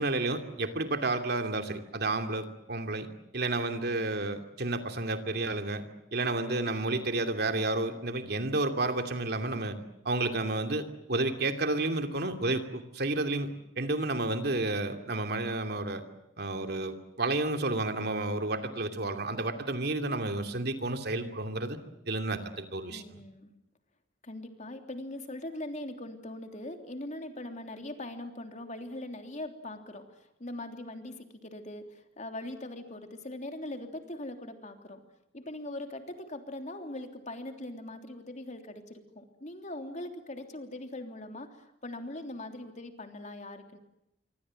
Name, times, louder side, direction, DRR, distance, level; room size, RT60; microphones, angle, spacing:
voice 1, 0.0-3.1 3.3-5.8 6.1-9.8 10.0-13.5 13.8-16.0 16.4-21.8 22.1-23.2, right 2 dB, 60° right, 7 dB, 2.6 m, -31 dB
voice 2, 22.9-23.5 24.2-35.0 35.3-43.8, left 1 dB, 40° left, 5 dB, 3.2 m, -41 dB
26.5 x 24.5 x 7.6 m, 0.83 s
head